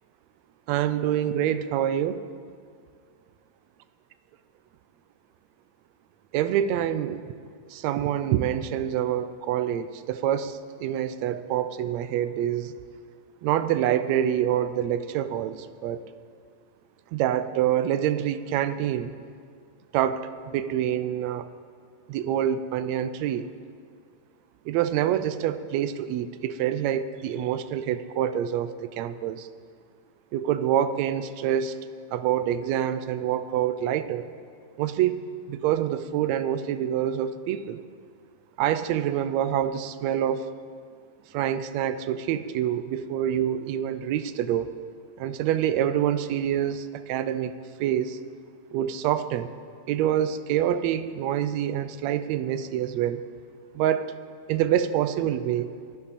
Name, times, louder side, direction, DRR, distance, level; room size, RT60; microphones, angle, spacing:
voice 1, 0.7-2.2 6.3-7.2 7.7-12.7 13.4-16.0 17.1-19.1 19.9-21.5 22.1-23.5 24.7-29.5 30.3-31.8 32.1-34.3 34.8-37.8 38.6-40.5 41.3-44.7 45.2-47.5 47.8-48.2 48.7-49.5 49.9-53.2 53.7-54.1 54.5-55.7, right 10 dB, 80° right, 12 dB, 1.7 m, -26 dB
20.0 x 13.0 x 4.2 m, 2.1 s
omnidirectional pair, 3.3 m